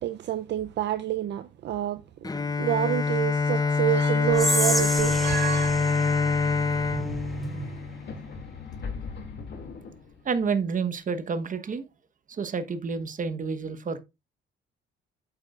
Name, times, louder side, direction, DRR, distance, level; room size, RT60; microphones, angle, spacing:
voice 1, 0.0-2.0 2.6-5.7, right 13 dB, 60° right, 0.5 m, -28 dB
Bowed string instrument, 2.2-8.3, left 4 dB, 20° left, 0.7 m, -25 dB
Whispering, 4.3-7.5, equal, ahead, 1.1 m, -30 dB
sound 1, 5.1-10.4, right 1 dB, 60° left, 2.4 m, -37 dB
voice 2, 6.9-7.7 10.2-11.8 12.3-14.0, right 5 dB, 40° right, 1.1 m, -30 dB
8.6 x 7.8 x 2.4 m
cardioid pair, 90°, 20 cm